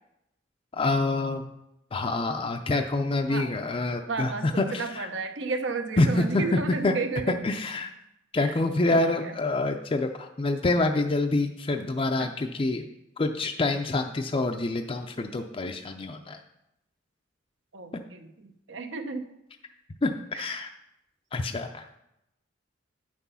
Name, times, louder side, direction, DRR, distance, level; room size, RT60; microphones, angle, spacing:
voice 1, 0.7-1.5 1.9-5.1 6.0-7.0 7.4-7.9 8.3-12.9 13.2-16.4 20.0-20.7 21.3-22.0, left 2 dB, 30° left, 4 dB, 0.4 m, -27 dB
voice 2, 4.1-7.4 8.4-8.6 8.9-9.3 12.2-12.3 17.7-19.3 20.3-20.6, right 4 dB, 70° right, 7 dB, 0.8 m, -33 dB
8.9 x 6.1 x 5.5 m, 0.85 s
head